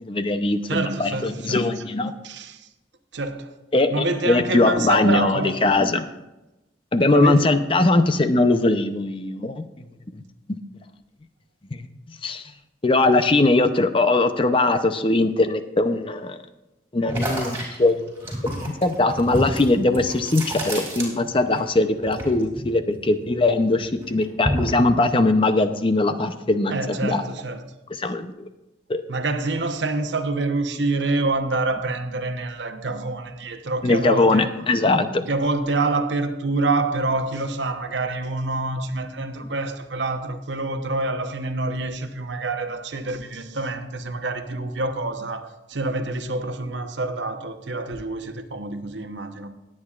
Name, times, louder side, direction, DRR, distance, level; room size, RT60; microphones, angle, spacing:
voice 1, 0.0-2.1 3.7-3.9 4.3-6.1 6.9-9.6 10.5-10.6 11.7-11.9 12.2-12.4 12.8-16.4 16.9-18.0 18.6-27.2 28.0-28.3 28.9-29.0 33.8-35.3, left 2 dB, 30° left, 0.6 m, -20 dB
voice 2, 0.7-1.8 2.2-2.7 3.1-3.5 3.9-5.6 7.1-7.5 26.7-27.6 29.1-34.5 35.3-49.5, right 2 dB, 80° right, 0.9 m, -26 dB
sound 1, 17.1-21.6 21.9-23.5 23.8-24.8, right 1 dB, 15° right, 2.9 m, -29 dB
19.5 x 8.7 x 2.4 m
head